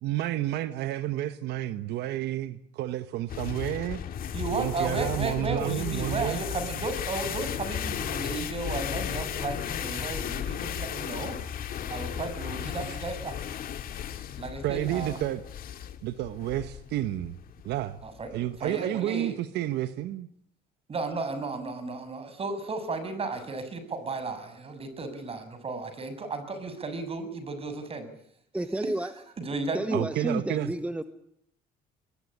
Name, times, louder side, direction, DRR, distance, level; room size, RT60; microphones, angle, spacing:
voice 1, 0.0-4.0 4.5-6.4 12.9-13.0 14.6-15.4 16.0-17.4 17.6-18.0 18.3-20.3 29.9-30.7, right 13 dB, 80° right, 1.3 m, -30 dB
sound 1, 3.3-18.7, left 9 dB, 60° left, 2.6 m, -35 dB
voice 2, 4.3-11.4 11.9-13.4 14.4-15.2 18.0-18.3 18.6-19.3 20.9-28.1 28.8-28.9 29.4-30.0, right 3 dB, 35° right, 6.8 m, -34 dB
voice 3, 28.5-29.1 29.7-31.0, right 1 dB, 10° right, 1.5 m, -30 dB
22.5 x 22.0 x 9.9 m
cardioid pair, 110°, 17 cm